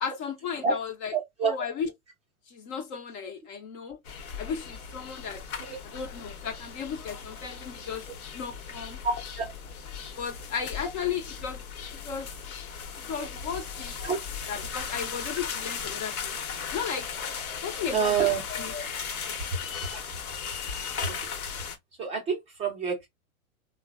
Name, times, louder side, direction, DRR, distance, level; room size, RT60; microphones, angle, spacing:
voice 1, 0.0-1.2 1.4-1.9 2.5-4.0 4.4-5.4 5.9-8.0 8.3-9.0 10.2-11.6 12.0-12.3 13.1-13.9 14.5-16.4 16.7-17.1 17.6-18.8, left 6 dB, 35° left, 0.5 m, -35 dB
voice 2, 1.1-1.5 5.6-5.8 9.0-9.5 14.0-14.2 17.9-18.4 21.0-21.3 22.0-23.1, right 6 dB, 15° right, 0.5 m, -27 dB
sound 1, 4.0-21.8, left 6 dB, 75° left, 0.9 m, -37 dB
3.1 x 2.1 x 2.3 m
hypercardioid pair, 120°, 43 cm